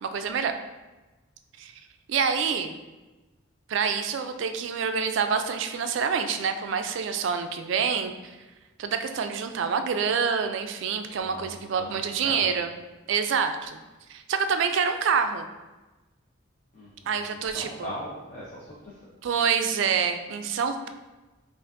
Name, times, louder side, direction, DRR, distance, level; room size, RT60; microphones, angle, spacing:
voice 1, 0.0-0.5 1.6-1.7 2.1-2.8 3.7-8.4 8.8-12.7 13.1-13.8 14.1-15.5 17.1-17.9 19.2-20.9, right 6 dB, 60° right, 8 dB, 0.3 m, -27 dB
voice 2, 11.2-12.5 16.7-18.9, equal, 35° left, -7 dB, 0.7 m, -40 dB
5.8 x 2.5 x 2.5 m, 1.1 s
head